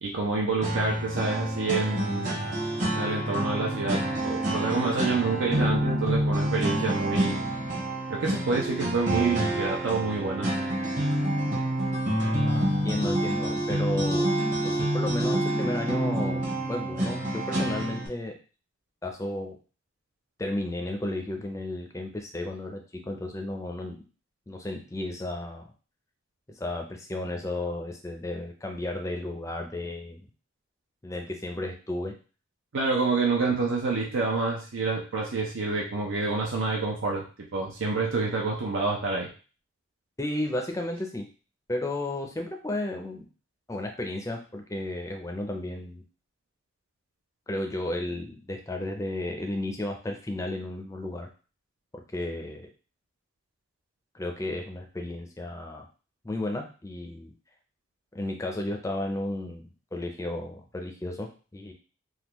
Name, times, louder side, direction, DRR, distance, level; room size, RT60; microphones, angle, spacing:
voice 1, 0.0-2.4 2.9-7.5 8.1-10.5 32.7-37.2 37.5-39.3, right 3 dB, 85° right, -1 dB, 0.6 m, -28 dB
sound 1, 0.6-18.1, right 1 dB, 40° right, 0.9 m, -28 dB
voice 2, 12.4-14.3 14.6-16.4 16.7-18.4 19.0-19.6 20.4-24.0 24.5-25.7 26.6-30.3 31.0-32.1 40.2-41.3 41.7-43.3 43.7-46.0 47.5-51.3 51.9-52.7 54.1-55.9 56.2-57.3 58.1-61.7, left 1 dB, 15° left, 3 dB, 0.4 m, -33 dB
3.6 x 2.2 x 2.9 m, 0.36 s
head